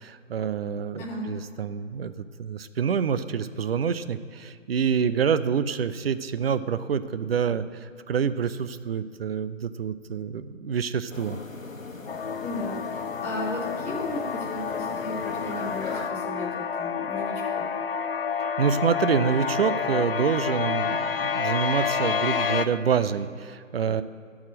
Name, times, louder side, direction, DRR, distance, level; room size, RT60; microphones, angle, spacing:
voice 1, 0.0-11.4 18.6-24.0, right 7 dB, 50° right, 12 dB, 0.5 m, -27 dB
sound 1, 11.1-16.1, left 3 dB, 85° left, 1.2 m, -39 dB
sound 2, 12.1-22.7, left 6 dB, 50° left, 0.4 m, -29 dB
voice 2, 12.4-17.7, left 1 dB, 5° left, -5 dB, 0.7 m, -35 dB
13.5 x 4.8 x 7.3 m, 2.3 s
figure-of-eight pair, 140°, 39 cm